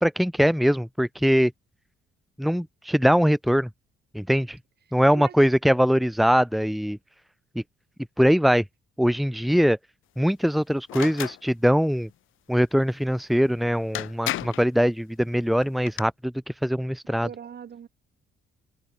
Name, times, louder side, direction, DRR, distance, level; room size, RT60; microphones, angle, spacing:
voice 1, 0.0-1.5 2.4-3.7 4.1-4.6 4.9-7.0 7.6-7.7 8.2-8.6 9.0-9.8 10.2-12.1 12.5-16.3 16.6-17.3, equal, ahead, 1.8 m, -22 dB
sound 1, 10.9-11.4 13.5-13.6 13.9-14.7 15.6-16.0, left 15 dB, 85° left, 4.5 m, -32 dB
voice 2, 17.1-17.9, right 8 dB, 55° right, 5.4 m, -40 dB
cardioid pair, 90°, 20 cm